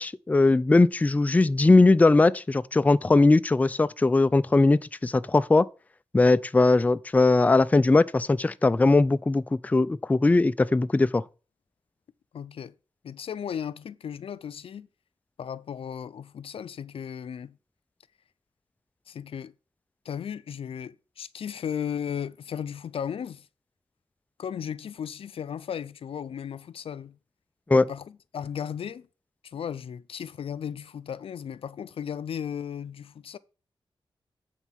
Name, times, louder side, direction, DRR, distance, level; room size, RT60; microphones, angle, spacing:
voice 1, 0.0-5.7 6.1-11.2 27.7-27.9, left 3 dB, 15° left, 0.3 m, -20 dB
voice 2, 12.3-12.7 13.0-14.9 15.4-17.6 19.1-19.5 20.1-23.5 24.4-27.2 27.7-29.1 29.4-33.4, left 8 dB, 85° left, 0.4 m, -35 dB
8.1 x 4.5 x 5.7 m
wide cardioid pair, 90°, 9 cm